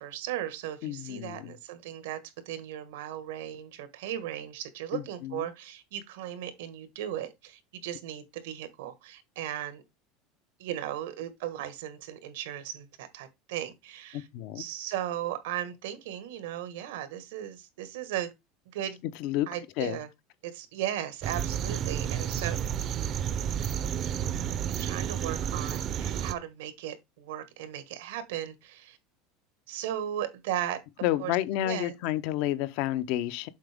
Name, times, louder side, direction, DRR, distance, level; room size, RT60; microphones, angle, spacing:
voice 1, 0.0-2.2 2.4-9.8 10.6-14.3 14.5-18.3 18.7-19.0 19.5-20.1 20.4-22.6 24.8-29.0 29.7-30.8 31.2-31.4 31.6-31.9, right 11 dB, 85° right, 1.5 m, -36 dB
voice 2, 0.8-1.6 4.9-5.5 14.1-14.6 19.2-19.5 19.8-20.0 31.0-33.5, left 14 dB, 60° left, 0.7 m, -30 dB
sound 1, 21.2-26.3, right 9 dB, 35° right, 0.6 m, -31 dB
7.4 x 4.8 x 3.5 m
supercardioid pair, 155°, 0 cm